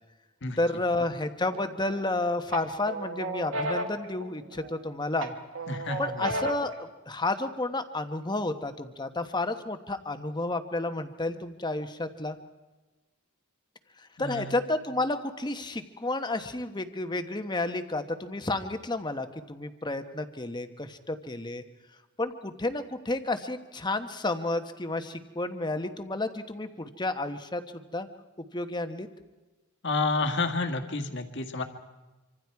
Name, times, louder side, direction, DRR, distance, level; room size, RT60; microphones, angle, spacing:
voice 1, 0.6-5.3 6.0-12.4 14.2-21.6 22.2-28.1 28.5-29.1, left 2 dB, 20° left, 8 dB, 1.2 m, -31 dB
sound 1, 1.5-2.1 2.5-4.8 5.2-6.8, right 1 dB, 70° right, 1.7 m, -34 dB
voice 2, 5.7-6.2 14.2-14.5 29.8-31.6, left 3 dB, 55° left, 6 dB, 1.9 m, -30 dB
26.0 x 25.5 x 4.7 m, 1.2 s
head